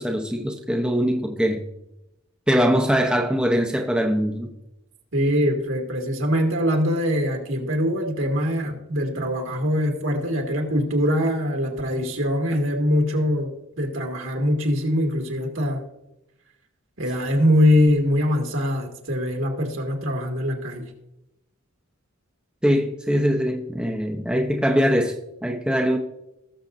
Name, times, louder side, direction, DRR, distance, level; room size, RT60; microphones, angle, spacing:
voice 1, 0.0-1.6 2.5-4.5 22.6-25.1 25.4-26.0, equal, 5° right, 0.7 m, -22 dB
voice 2, 5.1-15.8 17.0-20.9, equal, 70° right, 2.0 m, -23 dB
18.0 x 7.1 x 2.6 m
head